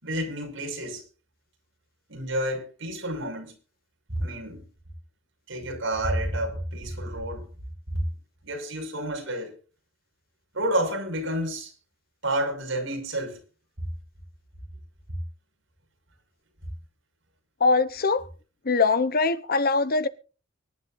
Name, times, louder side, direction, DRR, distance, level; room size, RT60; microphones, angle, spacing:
voice 1, 0.0-1.0 2.1-3.5 4.1-4.7 5.5-7.5 7.9-8.1 8.4-9.5 10.5-11.7 12.2-13.4, right 1 dB, 65° right, 6.4 m, -29 dB
voice 2, 17.6-18.3 18.6-20.1, left 4 dB, 50° left, 1.0 m, -22 dB
24.5 x 12.0 x 2.7 m
head